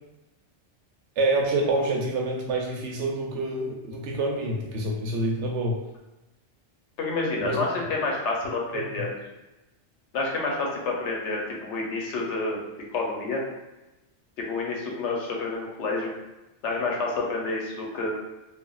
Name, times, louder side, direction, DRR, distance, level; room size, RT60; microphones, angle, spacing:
voice 1, 1.2-5.8 7.4-7.6 8.7-8.8, right 2 dB, 85° right, 0 dB, 0.9 m, -27 dB
voice 2, 7.0-9.1 10.1-12.6 12.9-13.4 14.4-16.1 16.6-18.1, left 3 dB, 85° left, -1 dB, 1.0 m, -29 dB
3.3 x 2.0 x 2.3 m, 1.0 s
omnidirectional pair, 1.2 m